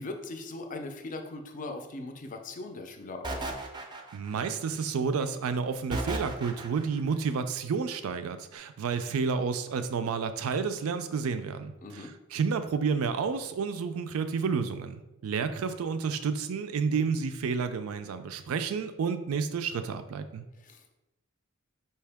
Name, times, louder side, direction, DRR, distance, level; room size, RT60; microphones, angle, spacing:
voice 1, 0.0-3.5 11.8-12.1 20.6-20.9, left 2 dB, 40° left, 5 dB, 0.5 m, -40 dB
sound 1, 3.2-4.5 5.9-7.0, right 2 dB, 20° right, 0.4 m, -35 dB
voice 2, 4.1-20.4, right 5 dB, 90° right, 10 dB, 0.4 m, -30 dB
4.5 x 2.8 x 3.4 m, 0.96 s
head